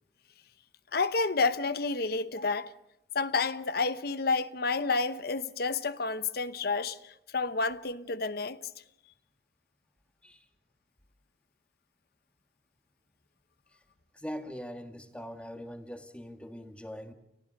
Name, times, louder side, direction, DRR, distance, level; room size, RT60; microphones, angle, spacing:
voice 1, 0.9-2.7 3.1-7.0 7.3-8.6, left 4 dB, 60° left, 0.9 m, -29 dB
voice 2, 14.1-17.1, equal, 5° left, 1.7 m, -42 dB
29.5 x 15.5 x 7.6 m
head